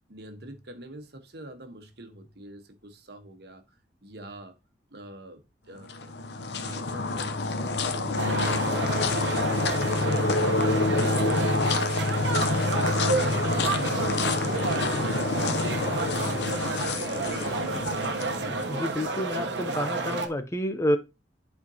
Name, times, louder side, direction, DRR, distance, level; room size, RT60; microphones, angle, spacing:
voice 1, 0.1-3.6 4.0-4.6 4.9-5.9 6.3-16.7, right 1 dB, 65° right, 1.1 m, -45 dB
sound 1, 5.8-19.1, left 3 dB, 70° left, 0.7 m, -27 dB
sound 2, 8.2-20.3, right 3 dB, 85° right, 1.0 m, -31 dB
voice 2, 18.7-21.0, left 1 dB, 15° left, 0.5 m, -28 dB
11.0 x 4.3 x 2.8 m
head